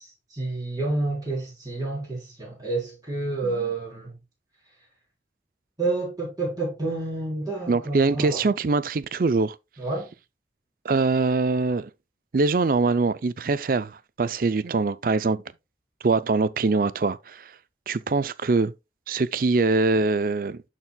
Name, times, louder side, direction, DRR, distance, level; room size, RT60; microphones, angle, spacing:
voice 1, 0.0-4.1 5.8-8.5 9.8-10.1, right 2 dB, 20° right, 3.8 m, -29 dB
voice 2, 7.7-9.6 10.8-11.9 12.3-15.4 16.0-17.5 17.9-18.7 19.1-20.6, right 3 dB, 50° right, 0.4 m, -23 dB
12.5 x 4.4 x 2.3 m
head